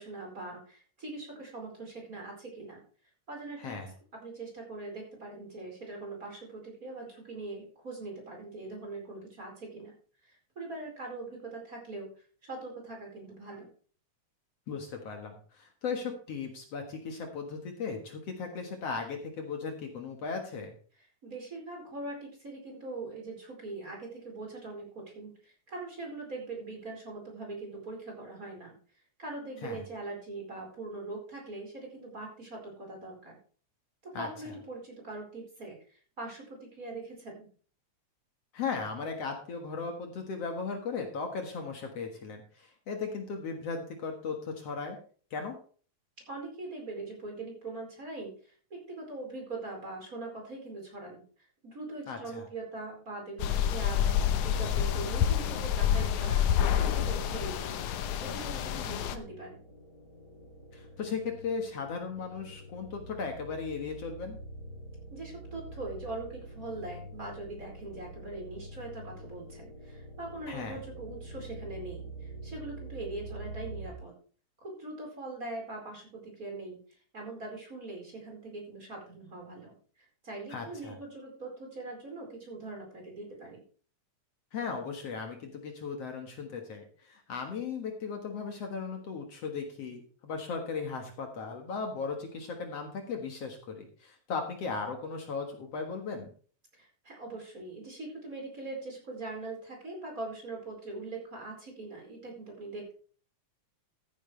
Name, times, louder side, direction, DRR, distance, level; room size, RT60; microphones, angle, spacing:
voice 1, 0.0-2.8 3.3-3.8 4.2-9.9 10.2-12.1 12.4-13.7 21.2-28.7 29.2-33.4 34.0-37.5 46.3-51.2 51.6-54.1 54.4-57.8 58.2-59.6 65.1-74.1 74.6-76.8 77.1-83.6 96.8-102.9, right 2 dB, 25° right, -1 dB, 4.8 m, -42 dB
voice 2, 3.6-3.9 14.7-20.8 29.6-29.8 34.1-34.3 38.5-45.0 45.3-45.6 52.1-52.5 58.7-59.0 60.7-64.4 70.5-70.8 80.5-80.9 84.5-96.3, left 5 dB, 60° left, 3 dB, 2.5 m, -37 dB
sound 1, 53.4-59.2, left 9 dB, 85° left, 2.4 m, -28 dB
sound 2, 56.5-73.9, right 1 dB, 30° left, 3.9 m, -46 dB
14.5 x 10.0 x 3.3 m, 0.42 s
omnidirectional pair, 3.3 m